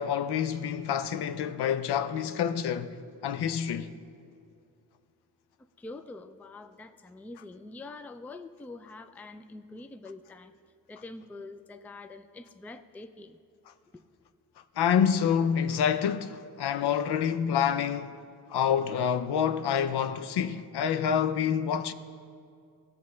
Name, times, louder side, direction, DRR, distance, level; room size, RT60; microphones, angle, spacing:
voice 1, 0.0-3.0 3.2-3.9 14.8-18.2 18.5-21.9, left 8 dB, 70° left, 0.6 m, -27 dB
voice 2, 5.8-10.5 10.9-13.4, left 2 dB, 5° left, 0.3 m, -45 dB
17.0 x 7.0 x 3.2 m
cardioid pair, 85°, 41 cm